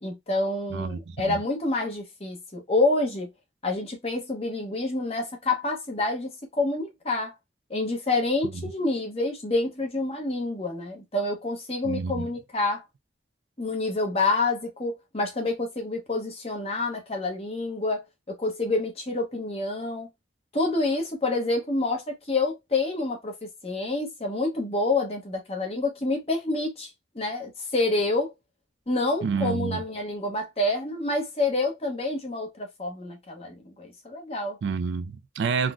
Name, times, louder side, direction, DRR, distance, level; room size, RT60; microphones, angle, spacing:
voice 1, 0.0-3.3 3.6-7.3 7.7-12.8 13.6-20.1 20.5-26.9 27.1-28.3 28.9-34.6, left 2 dB, 35° left, 0.9 m, -28 dB
voice 2, 0.7-1.4 11.8-12.3 29.2-29.8 34.6-35.7, right 5 dB, 75° right, 0.3 m, -29 dB
3.7 x 2.1 x 2.4 m
head